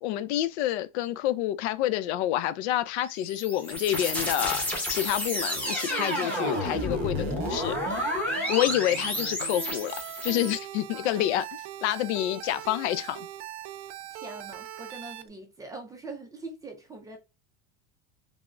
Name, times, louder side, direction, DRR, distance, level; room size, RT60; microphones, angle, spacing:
voice 1, 0.0-9.9 10.2-11.5 11.8-13.3, left 13 dB, 80° left, 0.5 m, -28 dB
sound 1, 3.0-10.6, left 1 dB, 5° left, 0.8 m, -31 dB
sound 2, 5.5-15.3, right 12 dB, 80° right, 0.5 m, -41 dB
voice 2, 10.9-11.2 14.1-17.2, right 3 dB, 10° right, 0.3 m, -43 dB
3.4 x 2.0 x 2.4 m
supercardioid pair, 145°, 33 cm